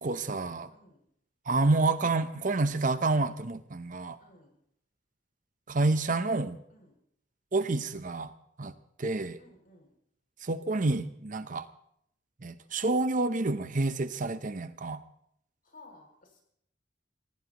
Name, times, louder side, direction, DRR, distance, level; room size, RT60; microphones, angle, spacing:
voice 1, 0.0-0.7 1.5-4.2 5.7-6.6 7.5-8.3 8.6-9.4 10.4-11.7 12.4-15.0, right 3 dB, 45° right, 11 dB, 0.8 m, -28 dB
voice 2, 0.7-1.0 4.2-4.6 6.7-7.0 9.4-9.9 15.6-16.4, left 2 dB, 50° left, 2 dB, 6.8 m, -56 dB
26.0 x 17.0 x 3.0 m, 0.72 s
head